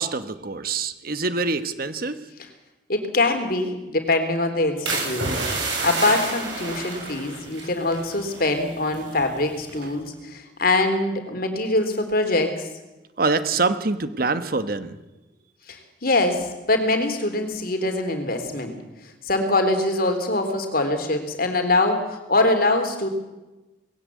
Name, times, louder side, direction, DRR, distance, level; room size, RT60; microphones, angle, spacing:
voice 1, 0.0-2.2 13.2-15.0, right 3 dB, 50° right, 11 dB, 1.1 m, -25 dB
voice 2, 2.9-5.3 5.8-12.7 15.7-18.8 19.3-23.1, left 2 dB, 50° left, 6 dB, 3.4 m, -23 dB
sound 1, 4.9-8.6 8.9-9.2 9.7-10.0, right 3 dB, 70° right, 7.6 m, -29 dB
19.5 x 17.0 x 8.3 m, 1.1 s
head